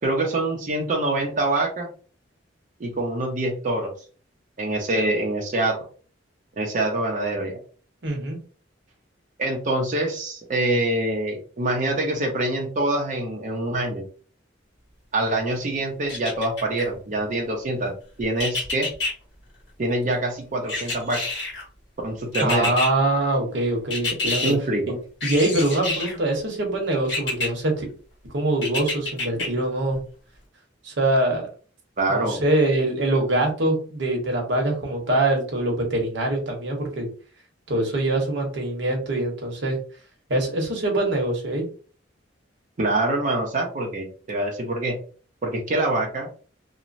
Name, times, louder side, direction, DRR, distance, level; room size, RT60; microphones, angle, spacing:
voice 1, 0.0-1.9 2.8-3.9 4.6-5.8 6.6-7.6 9.4-14.0 15.1-17.9 18.2-18.9 19.8-21.2 22.0-22.7 24.4-24.9 32.0-32.4 42.8-45.0 45.4-46.3, right 2 dB, 40° right, 0 dB, 0.5 m, -25 dB
voice 2, 8.0-8.4 22.4-24.5 25.2-27.9 28.3-30.0 30.8-31.5 32.1-37.1 37.7-39.8 40.3-41.7, right 1 dB, 65° right, 1 dB, 0.9 m, -23 dB
sound 1, 16.1-16.9 18.4-19.1 20.7-21.6 22.3-22.9 23.9-24.5 25.2-26.2 27.1-27.5 28.6-29.5 29.9-30.0, left 2 dB, 65° left, 1.5 m, -27 dB
3.0 x 2.0 x 2.5 m, 0.40 s
head